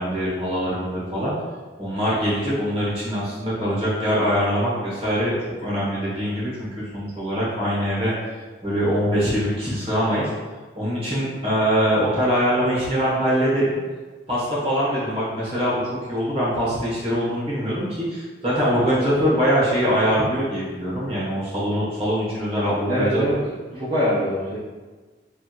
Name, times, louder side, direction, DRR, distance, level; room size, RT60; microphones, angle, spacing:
voice 1, 0.0-1.3 1.8-5.3 5.6-6.7 6.9-8.1 8.6-10.3 10.7-13.8 14.3-23.1, equal, 30° right, -8 dB, 1.5 m, -23 dB
voice 2, 22.9-23.4 23.7-24.6, equal, 50° right, -14 dB, 1.3 m, -22 dB
4.3 x 3.5 x 2.5 m, 1.3 s
head